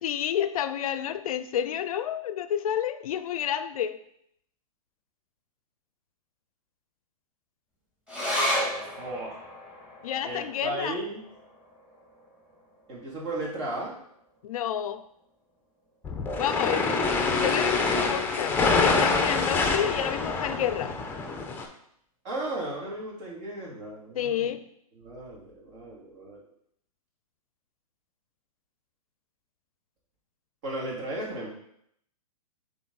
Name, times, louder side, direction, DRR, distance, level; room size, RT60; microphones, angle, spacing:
voice 1, 0.0-4.0 10.0-11.0 14.4-15.0 16.4-16.9 17.4-21.0 24.2-24.6, left 9 dB, 70° left, 13 dB, 0.5 m, -30 dB
sound 1, 8.1-14.8 15.2-15.3 15.6-16.3 16.8-16.9, equal, 5° right, 2.4 m, -35 dB
voice 2, 9.0-9.4 10.2-11.2 12.9-13.9 22.2-24.5 24.9-26.4 30.6-31.5, right 1 dB, 45° right, -3 dB, 2.6 m, -35 dB
sound 2, 16.0-21.7, left 4 dB, 10° left, 0.7 m, -26 dB
6.8 x 4.0 x 4.0 m, 0.72 s
hypercardioid pair, 135°, 19 cm